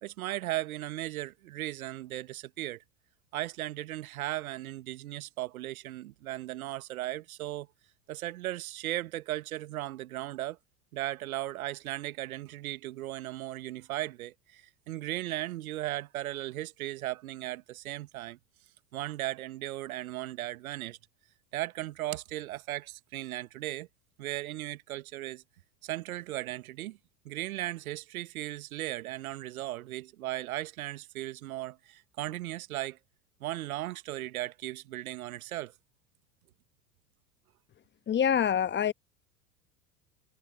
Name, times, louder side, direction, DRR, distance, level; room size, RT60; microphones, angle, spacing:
voice 1, 0.0-2.8 3.3-7.7 8.1-10.6 10.9-18.4 18.9-21.0 21.5-23.9 24.2-25.4 25.8-27.0 27.2-33.0 33.4-35.7, right 15 dB, 70° right, 1.3 m, -37 dB
voice 2, 38.1-38.9, left 8 dB, 25° left, 1.1 m, -25 dB
hypercardioid pair, 85°, 45 cm